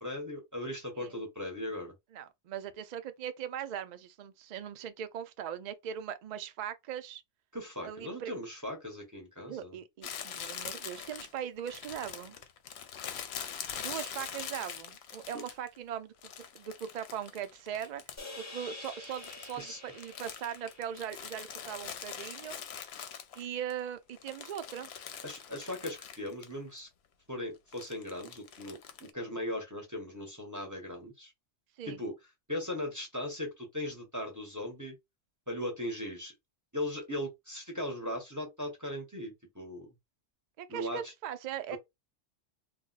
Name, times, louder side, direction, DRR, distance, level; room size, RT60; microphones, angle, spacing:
voice 1, 0.0-1.9 7.5-9.8 19.6-19.8 25.2-26.9 27.3-31.3 31.9-32.1 32.5-35.0 35.5-36.3 36.7-39.9 40.7-41.1 41.7-41.8, left 1 dB, 20° right, 0.7 m, -38 dB
voice 2, 2.1-7.2 7.8-8.3 9.5-12.4 13.8-18.0 18.5-22.6 23.3-24.9 31.8-32.0 40.6-41.8, right 9 dB, 70° right, 0.4 m, -40 dB
Crumpling crinkling, 10.0-15.8 16.2-18.4 18.7-23.7 24.1-26.5 26.8-26.9 27.7-29.1, left 8 dB, 65° left, 0.8 m, -43 dB
sound 1, 18.2-22.6, left 2 dB, 20° left, 0.5 m, -48 dB
2.4 x 2.1 x 3.9 m
omnidirectional pair, 1.2 m